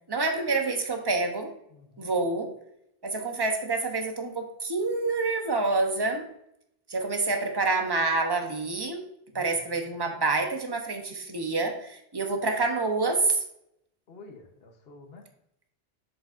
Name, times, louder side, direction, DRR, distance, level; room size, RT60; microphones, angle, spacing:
voice 1, 0.1-1.5 2.0-2.5 3.0-6.3 6.9-9.0 9.3-13.4, right 3 dB, 25° right, 4 dB, 0.9 m, -27 dB
voice 2, 1.7-2.1 9.3-9.8 14.1-15.2, left 3 dB, 75° left, 3 dB, 1.3 m, -50 dB
7.7 x 6.9 x 2.6 m, 0.78 s
omnidirectional pair, 1.0 m